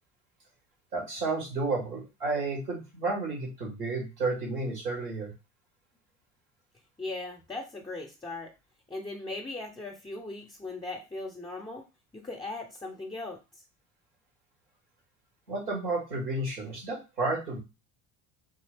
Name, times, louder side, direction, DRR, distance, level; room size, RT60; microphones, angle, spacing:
voice 1, 0.9-5.3 15.5-17.6, right 3 dB, 90° right, -2 dB, 2.1 m, -31 dB
voice 2, 7.0-8.5 8.9-11.8 12.1-13.6, left 2 dB, 10° left, 0 dB, 0.6 m, -38 dB
3.6 x 2.7 x 3.3 m, 0.28 s
hypercardioid pair, 65°, 44 cm